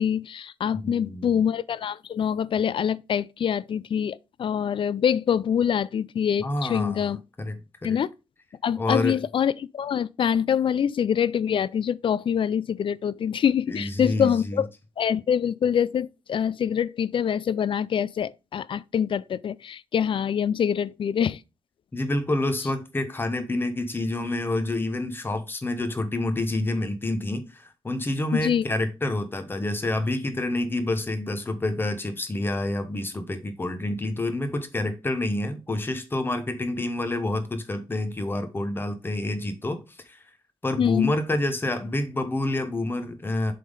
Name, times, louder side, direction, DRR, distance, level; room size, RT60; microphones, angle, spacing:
voice 1, 0.0-7.2 7.8-8.1 8.6-14.7 15.0-21.4 28.3-28.6 40.8-41.1, left 8 dB, 55° left, 0.3 m, -25 dB
voice 2, 0.8-1.4 6.4-8.0 8.8-9.2 13.7-14.6 21.9-40.2 40.6-43.5, left 2 dB, 20° left, 1.0 m, -28 dB
7.6 x 3.7 x 5.0 m
wide cardioid pair, 170°, 11 cm